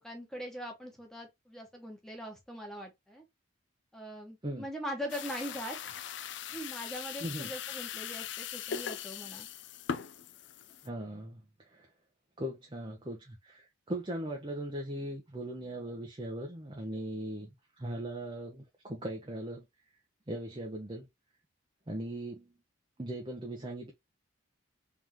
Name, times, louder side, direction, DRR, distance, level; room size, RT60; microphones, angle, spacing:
voice 1, 0.0-3.2 3.9-6.0 6.5-9.5, equal, ahead, 1.2 m, -41 dB
sound 1, 5.1-10.9, left 8 dB, 60° left, 0.5 m, -40 dB
voice 2, 7.2-7.5 10.8-11.4 11.7-11.9 12.4-17.5 17.8-19.7 20.3-21.1 21.9-22.5 23.0-23.9, right 1 dB, 25° right, 0.8 m, -39 dB
3.7 x 3.5 x 2.9 m
head